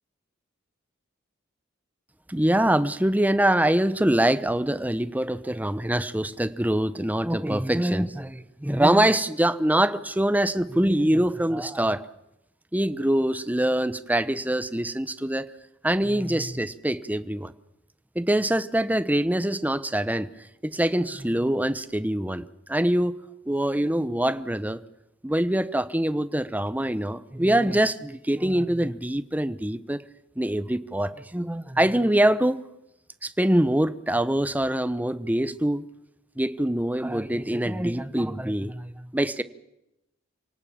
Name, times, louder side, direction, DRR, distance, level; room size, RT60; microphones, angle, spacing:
voice 1, 2.3-12.0 12.7-15.5 15.8-17.5 18.1-20.3 20.6-23.2 23.5-24.8 25.2-30.0 30.4-32.6 33.2-35.8 36.4-39.4, right 1 dB, 10° right, 0.9 m, -24 dB
27.5 x 18.5 x 7.4 m
head